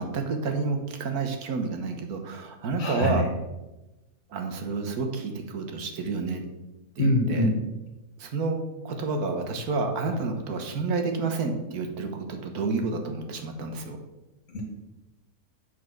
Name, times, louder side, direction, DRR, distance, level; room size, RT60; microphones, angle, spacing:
voice 1, 0.0-3.2 4.3-6.4 7.0-7.5 8.2-14.0, right 4 dB, 90° right, 5 dB, 1.6 m, -29 dB
voice 2, 2.8-3.2 7.0-7.5 14.5-14.6, left 1 dB, 60° left, -1 dB, 1.8 m, -24 dB
7.8 x 4.4 x 5.9 m, 1.0 s
omnidirectional pair, 1.6 m